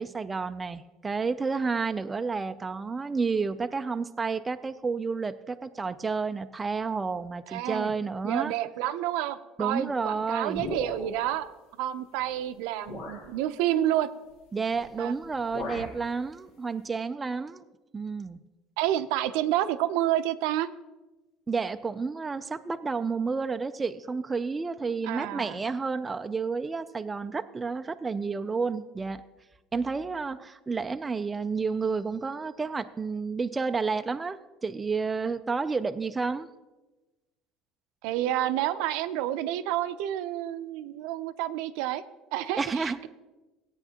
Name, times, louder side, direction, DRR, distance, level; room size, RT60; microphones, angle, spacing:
voice 1, 0.0-8.5 9.6-10.6 14.5-17.6 17.9-18.4 21.5-29.2 29.7-36.5 42.6-43.1, right 4 dB, 15° right, 9 dB, 0.3 m, -30 dB
voice 2, 7.5-7.9 8.2-11.5 11.8-14.1 15.0-15.1 18.8-20.7 25.0-25.6 38.0-42.0 42.3-43.1, right 13 dB, 80° right, 11 dB, 0.5 m, -29 dB
sound 1, 10.5-11.3 12.2-12.3 12.9-13.3 14.7-15.0 15.2-16.0, left 3 dB, 80° left, 2.0 m, -38 dB
16.5 x 8.9 x 2.9 m, 1.1 s
cardioid pair, 155°, 0 cm